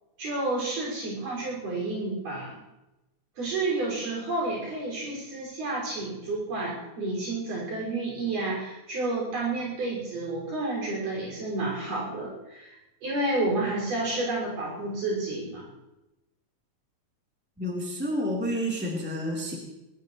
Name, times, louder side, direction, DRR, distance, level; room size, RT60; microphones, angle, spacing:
voice 1, 0.2-2.6 3.4-12.8 13.0-15.7, right 2 dB, 75° right, -3 dB, 7.4 m, -30 dB
voice 2, 17.6-19.6, equal, 5° right, -3 dB, 3.3 m, -29 dB
21.0 x 19.5 x 3.2 m, 0.97 s
omnidirectional pair, 3.8 m